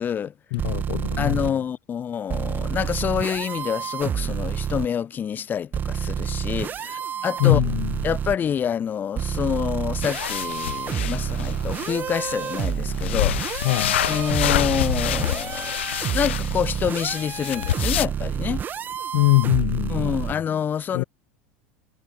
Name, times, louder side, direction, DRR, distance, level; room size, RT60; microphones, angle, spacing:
voice 1, 0.0-0.3 1.2-7.6 8.0-13.7 14.0-15.8 16.1-18.6 19.9-21.0, left 8 dB, 30° left, 1.0 m, -27 dB
voice 2, 0.5-1.4 7.4-7.9 13.6-14.0 19.1-20.1 20.9-21.0, left 25 dB, 70° left, 0.6 m, -22 dB
sound 1, 0.6-1.5 2.3-4.9 5.7-8.4 9.2-20.3, right 8 dB, 30° right, 0.5 m, -29 dB
sound 2, 10.0-18.1, left 12 dB, 85° left, 2.9 m, -28 dB
hypercardioid pair, 95°, 6 cm